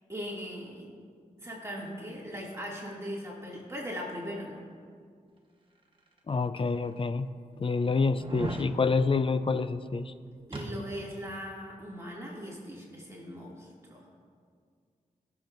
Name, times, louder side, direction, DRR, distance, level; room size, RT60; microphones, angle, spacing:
voice 1, 0.1-0.9 1.4-4.6 10.5-14.1, equal, 20° right, -5 dB, 2.4 m, -39 dB
sound 1, 6.2-6.3 7.0-7.1 8.1-8.7 10.5-11.2 11.5-11.6, right 2 dB, 40° right, 1.3 m, -37 dB
voice 2, 6.3-7.3 7.6-10.1, left 4 dB, 40° left, 11 dB, 0.5 m, -27 dB
21.0 x 7.2 x 2.6 m, 2.1 s
cardioid pair, 60°, 14 cm